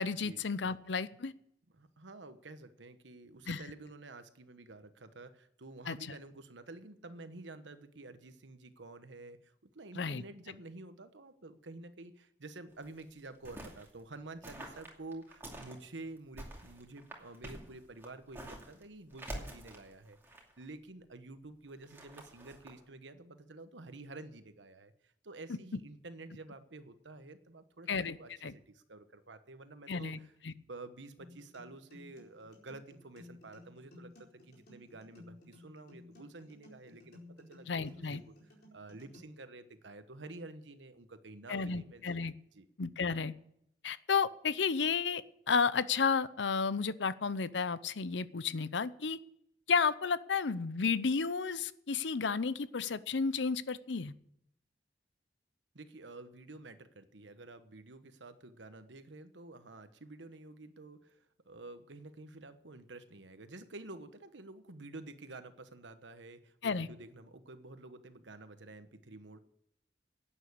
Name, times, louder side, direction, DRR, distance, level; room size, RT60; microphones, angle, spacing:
voice 1, 0.0-1.3 3.5-3.6 5.9-6.0 10.0-10.2 27.9-28.2 28.4-28.5 29.9-30.2 30.4-30.5 37.7-38.2 41.5-42.3 42.8-43.3 43.8-49.2 49.7-54.1 66.6-66.9, left 5 dB, 80° left, 16 dB, 0.7 m, -32 dB
voice 2, 1.7-42.7 55.7-69.4, right 2 dB, 85° right, 10 dB, 1.2 m, -50 dB
sound 1, 12.7-13.9 14.4-15.8 16.2-18.8 19.1-20.6 21.7-22.7, right 1 dB, 15° right, 2.5 m, -47 dB
sound 2, 31.2-39.2, left 2 dB, 60° left, 4.4 m, -56 dB
11.5 x 8.9 x 8.5 m, 0.74 s
head